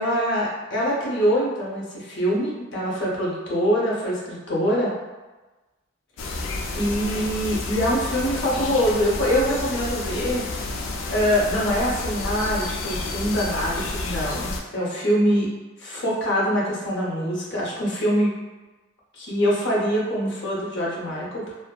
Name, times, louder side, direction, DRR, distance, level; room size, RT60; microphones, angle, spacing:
voice 1, 0.0-4.9 6.3-6.5 6.7-10.4 11.1-15.5 15.8-18.3 19.1-21.6, equal, 60° left, -5 dB, 0.7 m, -24 dB
sound 1, 6.2-14.6, left 2 dB, 85° left, 0.4 m, -30 dB
2.6 x 2.5 x 2.2 m, 1.2 s
head